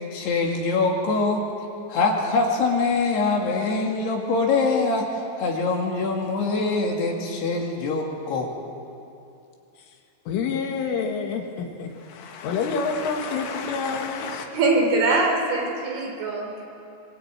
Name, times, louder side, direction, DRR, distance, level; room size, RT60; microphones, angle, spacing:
voice 1, 0.1-1.4 1.9-5.1 5.4-8.5, left 3 dB, 60° left, 0 dB, 4.1 m, -23 dB
voice 2, 10.3-14.5, left 5 dB, 75° left, 3 dB, 4.3 m, -28 dB
voice 3, 14.5-16.6, right 3 dB, 70° right, 1 dB, 6.6 m, -22 dB
24.0 x 22.5 x 9.0 m, 2.7 s
omnidirectional pair, 5.9 m